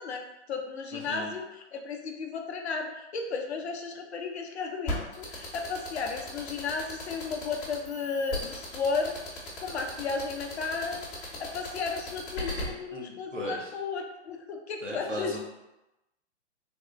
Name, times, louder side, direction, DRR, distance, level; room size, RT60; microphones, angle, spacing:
voice 1, 0.0-11.0 11.4-15.4, left 4 dB, 65° left, 3 dB, 0.6 m, -34 dB
voice 2, 0.9-1.3 12.9-13.7 14.8-15.4, equal, 90° right, -3 dB, 1.0 m, -37 dB
sound 1, 4.9-12.6, left 1 dB, 30° left, 0.9 m, -36 dB
3.6 x 2.2 x 3.1 m, 0.96 s
figure-of-eight pair, 115°, 36 cm